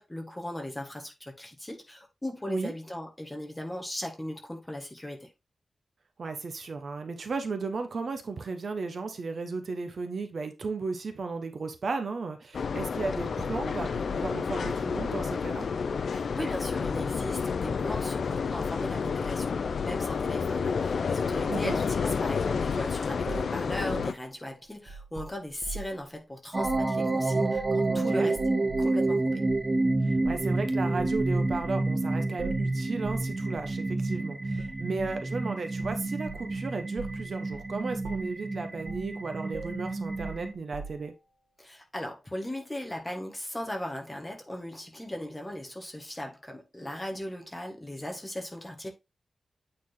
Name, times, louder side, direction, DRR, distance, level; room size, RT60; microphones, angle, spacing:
voice 1, 0.0-5.3 16.1-28.4 28.8-29.4 41.6-48.9, left 1 dB, 10° left, 1.7 m, -38 dB
voice 2, 6.2-15.7 21.5-21.8 27.9-28.3 30.0-41.1, right 4 dB, 60° right, 1.1 m, -35 dB
sound 1, 12.5-24.1, left 5 dB, 75° left, 0.4 m, -30 dB
sound 2, 23.3-26.0 26.6-26.9 27.6-28.0 28.3-29.0 29.5-29.7 30.2-30.6 31.0-31.8 32.4-32.7 33.0-33.3 33.6-33.8 34.6-35.2 35.8-36.6 37.0-37.2 37.5-37.7 38.0-38.4 38.9-39.1 39.5-41.2, right 4 dB, 80° right, 1.7 m, -42 dB
sound 3, 26.5-40.5, right 2 dB, 25° right, 0.8 m, -29 dB
8.8 x 3.9 x 3.7 m
wide cardioid pair, 165°, 0 cm